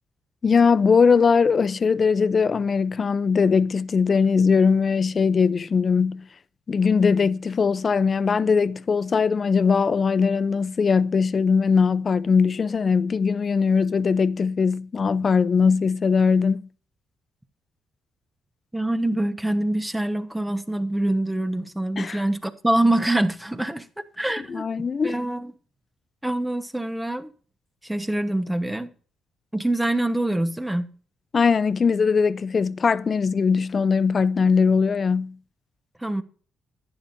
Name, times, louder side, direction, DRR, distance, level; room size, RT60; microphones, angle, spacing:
voice 1, 0.4-6.3 6.7-16.7 22.0-22.2 24.5-25.2 31.3-35.4, left 5 dB, 40° left, 0.5 m, -20 dB
voice 2, 18.7-25.5 26.2-27.3 27.8-28.9 29.5-30.9 36.0-36.2, right 1 dB, 10° right, 1.1 m, -25 dB
11.0 x 10.0 x 2.6 m
cardioid pair, 90°, 0 cm